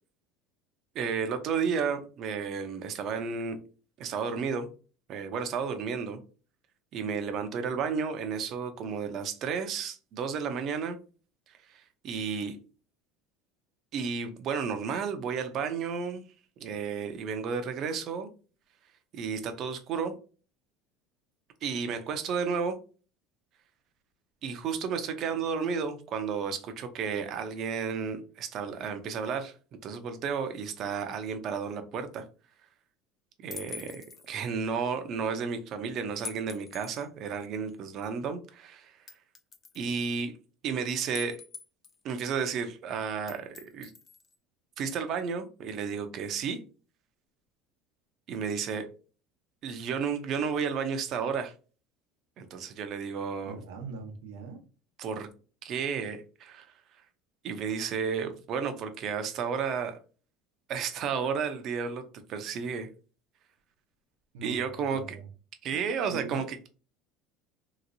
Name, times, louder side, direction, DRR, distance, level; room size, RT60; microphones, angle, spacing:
voice 1, 0.9-3.6 4.0-4.7 5.1-6.2 6.9-11.0 11.5-12.6 13.9-16.2 16.6-18.3 19.1-20.1 21.6-22.7 24.4-29.5 29.8-32.2 33.4-39.0 39.7-40.3 40.6-41.4 42.0-43.9 44.8-46.6 48.3-48.9 49.6-51.5 52.4-53.6 55.0-55.3 55.6-56.6 57.4-60.0 60.7-62.9 64.4-65.2 65.6-66.7, right 6 dB, 45° right, 0.6 m, -32 dB
sound 1, 33.5-34.3 36.2-37.1 37.7-37.8 39.1-39.9 41.1-42.0 43.3-44.3, left 6 dB, 25° left, 0.5 m, -44 dB
voice 2, 53.4-54.6 64.3-65.3 65.7-65.8 66.1-66.4, right 4 dB, 90° right, 0.9 m, -42 dB
3.1 x 2.9 x 2.6 m
cardioid pair, 135°, 0 cm